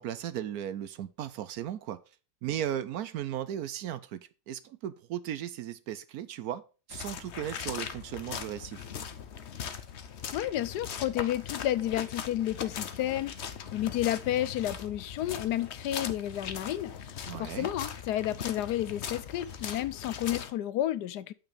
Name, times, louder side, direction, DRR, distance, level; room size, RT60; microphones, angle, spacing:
voice 1, 0.0-2.0 2.4-6.6 6.9-8.9 17.3-17.7, right 11 dB, 70° right, 1.0 m, -36 dB
sound 1, 6.9-20.5, left 7 dB, 50° left, 0.9 m, -40 dB
voice 2, 10.3-21.3, left 12 dB, 75° left, 1.1 m, -31 dB
9.0 x 5.7 x 4.9 m
omnidirectional pair, 1.9 m